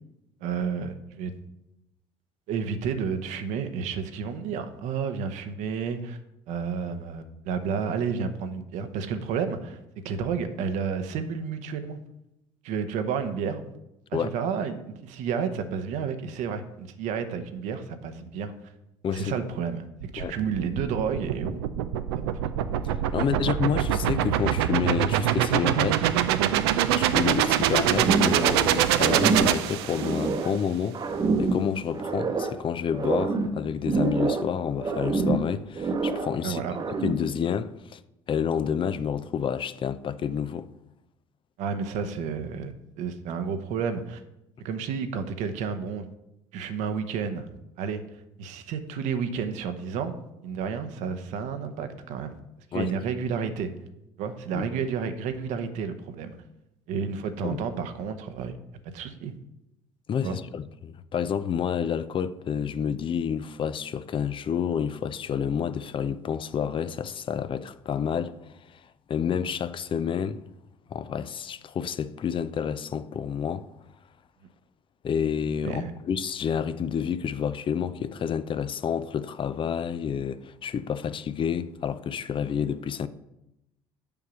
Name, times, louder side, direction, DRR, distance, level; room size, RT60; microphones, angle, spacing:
voice 1, 0.4-1.3 2.5-6.2 6.5-9.8 10.0-12.0 12.6-13.6 14.1-18.5 19.1-22.2 23.3-23.4 36.4-36.8 41.6-44.2 44.6-46.0 46.5-47.5 47.8-48.0 48.4-50.1 50.4-52.4 52.7-53.7 54.2-56.3 56.9-58.5 58.9-59.3 60.2-60.4 75.6-75.9, right 6 dB, 65° right, 0.9 m, -31 dB
voice 2, 19.0-19.3 20.2-20.4 23.1-26.1 26.9-31.0 31.4-36.6 37.0-38.0 38.3-40.7 52.7-53.0 54.5-54.7 57.4-57.6 60.1-68.4 68.7-68.8 69.1-70.4 70.9-73.7 75.0-83.1, left 7 dB, 40° left, 0.5 m, -29 dB
sound 1, 20.0-30.3, right 11 dB, 80° right, 0.5 m, -24 dB
sound 2, 28.0-28.7 28.9-30.6 30.9-32.6 32.9-34.5 34.8-36.4 36.7-37.3, right 3 dB, 35° right, 1.0 m, -27 dB
7.0 x 4.8 x 7.0 m
hypercardioid pair, 65°, 13 cm